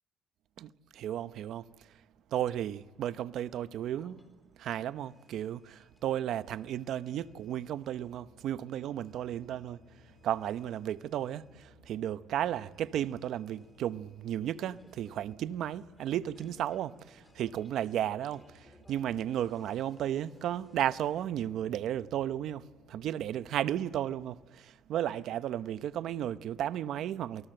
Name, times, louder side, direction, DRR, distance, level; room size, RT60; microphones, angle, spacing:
voice 1, 0.6-2.0 2.3-4.2 4.6-27.5, right 11 dB, 75° right, 0.7 m, -34 dB
sound 1, 3.9-21.3, left 2 dB, 15° left, 4.4 m, -64 dB
sound 2, 7.1-24.3, left 4 dB, 80° left, 4.5 m, -63 dB
28.5 x 20.5 x 7.8 m
cardioid pair, 105°, 0 cm